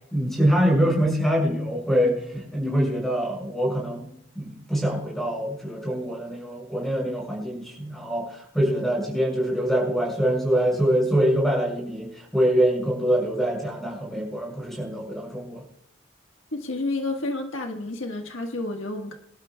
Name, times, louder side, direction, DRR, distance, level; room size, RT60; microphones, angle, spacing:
voice 1, 0.1-4.1 4.3-15.6, equal, ahead, -2 dB, 6.2 m, -24 dB
voice 2, 16.5-19.2, left 2 dB, 80° left, 3 dB, 1.5 m, -30 dB
24.5 x 12.0 x 2.3 m, 0.74 s
head